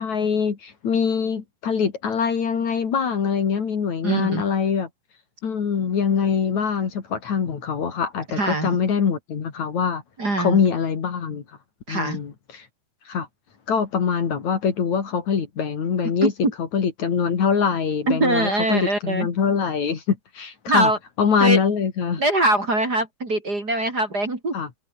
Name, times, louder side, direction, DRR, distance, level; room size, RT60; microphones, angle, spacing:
voice 1, 0.0-4.9 5.4-10.0 10.4-11.4 11.9-12.7 13.1-13.3 13.7-16.3 16.7-20.9 21.2-22.2 24.5-24.7, left 6 dB, 55° left, 3.9 m, -23 dB
voice 2, 4.0-4.4 8.4-8.8 10.2-10.6 11.9-12.2 16.2-16.5 18.1-19.3 20.7-21.0 21.4-21.6 22.2-24.6, right 2 dB, 25° right, 3.9 m, -22 dB
omnidirectional pair, 4.1 m